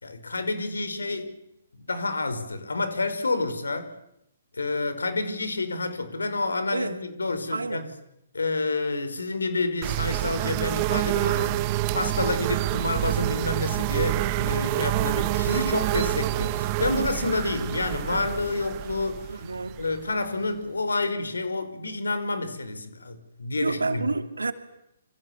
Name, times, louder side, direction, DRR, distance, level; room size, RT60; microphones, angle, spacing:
voice 1, 0.0-1.3 1.8-3.9 4.5-7.9 8.3-19.4 19.8-24.1, left 3 dB, 80° left, 5.1 m, -29 dB
voice 2, 7.5-7.9 19.3-19.8 23.6-24.5, right 3 dB, 85° right, 2.8 m, -29 dB
sound 1, 9.8-20.4, right 15 dB, 35° right, 1.6 m, -27 dB
28.0 x 26.5 x 7.3 m
figure-of-eight pair, 130°, 0 cm